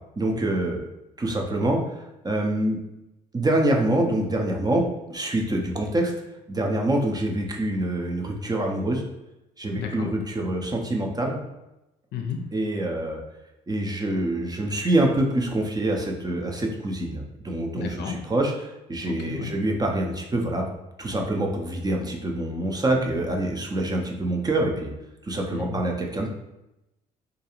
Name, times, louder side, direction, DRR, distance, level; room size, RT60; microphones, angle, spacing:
voice 1, 0.2-0.8 1.2-2.8 3.3-6.1 6.5-9.0 9.6-11.4 12.5-13.2 13.7-20.7 21.0-24.9 25.2-26.3, right 1 dB, 20° right, 1 dB, 0.5 m, -25 dB
voice 2, 9.8-10.1 12.1-12.5 17.7-18.2 19.0-19.5 25.5-25.8, left 7 dB, 55° left, 3 dB, 0.5 m, -33 dB
2.4 x 2.2 x 2.9 m, 0.92 s
hypercardioid pair, 55°, 21 cm